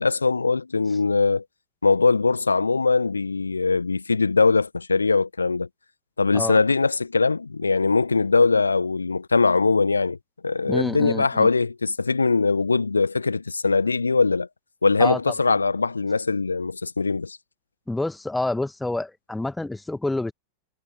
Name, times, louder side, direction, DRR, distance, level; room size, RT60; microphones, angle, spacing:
voice 1, 0.0-1.4 1.8-5.7 6.2-10.2 10.4-14.5 14.8-17.4, left 4 dB, 80° left, 1.0 m, -21 dB
voice 2, 10.7-11.5 15.0-15.2 17.9-20.3, left 2 dB, 5° left, 1.2 m, -27 dB
figure-of-eight pair, 90°, 0 cm